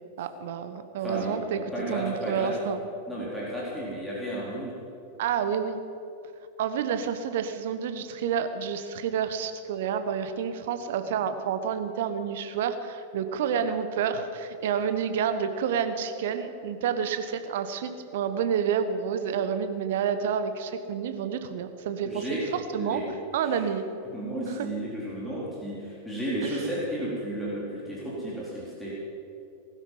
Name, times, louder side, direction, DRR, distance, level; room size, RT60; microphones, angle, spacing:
voice 1, 0.2-1.6 1.9-2.8 5.2-5.8 6.6-22.2 22.5-23.0 23.3-23.8 26.4-26.6, right 7 dB, 55° right, 9 dB, 1.1 m, -29 dB
voice 2, 1.0-2.5 3.1-4.8 22.0-22.4 22.8-23.0 24.1-28.9, right 1 dB, 5° left, -8 dB, 4.2 m, -33 dB
19.5 x 12.5 x 5.6 m, 2.7 s
figure-of-eight pair, 90°, 0 cm